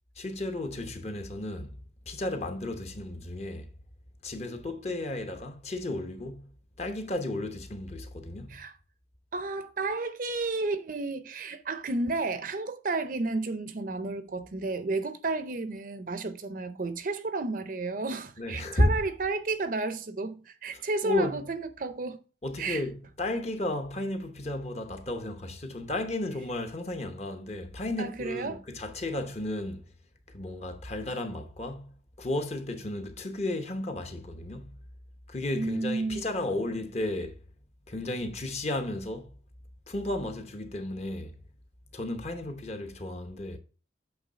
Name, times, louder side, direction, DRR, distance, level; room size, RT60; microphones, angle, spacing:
voice 1, 0.2-1.8 2.1-3.7 4.2-6.5 6.8-8.6 18.4-18.9 20.7-21.4 22.4-29.9 30.3-34.8 35.3-37.4 37.9-39.3 39.9-41.4 41.9-43.6, left 1 dB, 35° left, 0.8 m, -33 dB
voice 2, 9.3-22.2 22.6-22.8 28.0-28.6 35.5-36.2, right 3 dB, 45° right, 0.6 m, -32 dB
8.2 x 3.1 x 5.0 m
head